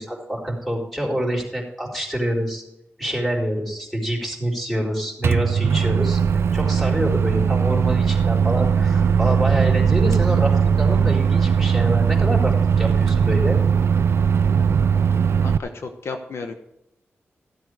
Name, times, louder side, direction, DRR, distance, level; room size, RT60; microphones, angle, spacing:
voice 1, 0.0-2.6 3.0-6.2 6.5-13.6, equal, ahead, -1 dB, 4.1 m, -26 dB
Microwave oven, 5.2-15.6, right 6 dB, 65° right, 0.4 m, -19 dB
voice 2, 15.4-16.5, left 4 dB, 75° left, 6 dB, 1.1 m, -33 dB
14.5 x 7.9 x 4.9 m, 0.83 s
cardioid pair, 70°, 5 cm